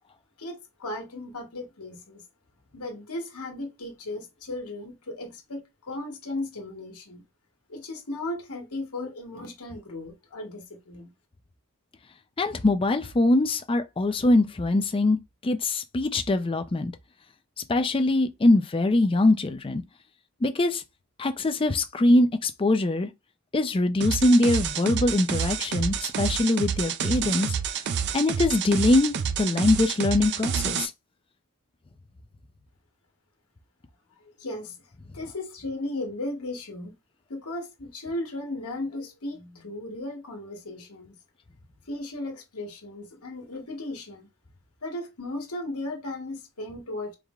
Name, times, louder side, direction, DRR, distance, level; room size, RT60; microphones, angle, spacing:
voice 1, 0.4-2.2 2.7-7.2 7.7-11.1 34.4-34.8 35.1-36.9 37.3-41.2 41.9-44.3 44.8-47.1, left 2 dB, 80° left, 1.3 m, -36 dB
voice 2, 12.4-15.2 15.4-16.9 17.6-19.8 20.4-20.8 21.2-23.1 23.5-27.6 28.1-30.9, left 2 dB, 25° left, 0.4 m, -23 dB
sound 1, 24.0-30.9, right 7 dB, 50° right, 0.4 m, -29 dB
4.7 x 2.1 x 3.6 m
head